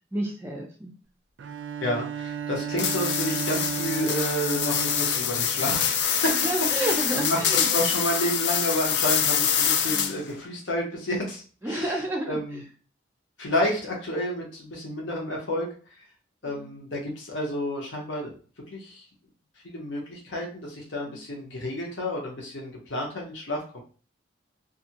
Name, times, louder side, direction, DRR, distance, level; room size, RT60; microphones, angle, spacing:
voice 1, 0.1-0.9 6.3-7.7 9.9-10.3 11.6-12.6 16.4-16.8 21.1-21.3, right 1 dB, 10° right, -1 dB, 0.3 m, -31 dB
Bowed string instrument, 1.4-6.0, right 8 dB, 85° right, 0.3 m, -33 dB
voice 2, 1.8-6.4 6.8-11.4 11.7-11.9 12.3-12.6 13.4-15.7 16.4-18.3 18.7-19.0 19.6-23.8, equal, 80° left, -1 dB, 0.9 m, -30 dB
sound 1, 2.8-10.3, left 8 dB, 65° left, 0.3 m, -25 dB
2.6 x 2.5 x 2.8 m, 0.39 s
head